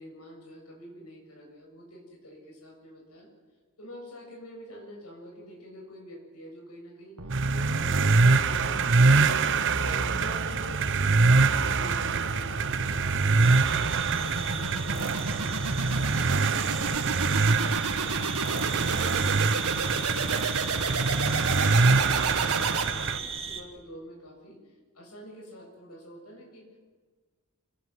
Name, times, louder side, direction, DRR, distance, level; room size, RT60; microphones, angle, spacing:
voice 1, 0.0-3.3 3.8-9.2 9.8-13.8 14.1-18.2 18.5-20.3 20.6-26.8, equal, 85° left, 0 dB, 7.3 m, -47 dB
sound 1, 7.2-23.3, right 4 dB, 90° right, 2.1 m, -33 dB
sound 2, 7.3-23.2, right 4 dB, 60° right, 1.1 m, -25 dB
sound 3, 13.4-23.6, right 5 dB, 25° right, 2.1 m, -37 dB
26.0 x 19.0 x 7.9 m, 1.4 s
head